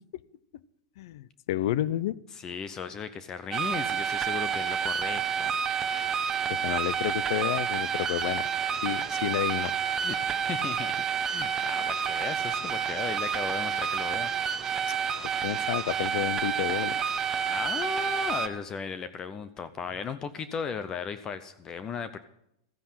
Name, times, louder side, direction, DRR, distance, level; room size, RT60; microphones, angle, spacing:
voice 1, 1.0-2.2 6.5-8.5 8.8-9.7 15.4-17.0, left 13 dB, 65° left, 20 dB, 0.6 m, -30 dB
voice 2, 2.3-5.6 10.0-14.3 17.4-22.2, left 6 dB, 25° left, 13 dB, 0.7 m, -36 dB
sound 1, 3.5-18.5, right 7 dB, 20° right, 0.9 m, -29 dB
14.5 x 9.9 x 7.5 m, 0.77 s
supercardioid pair, 145°, 3 cm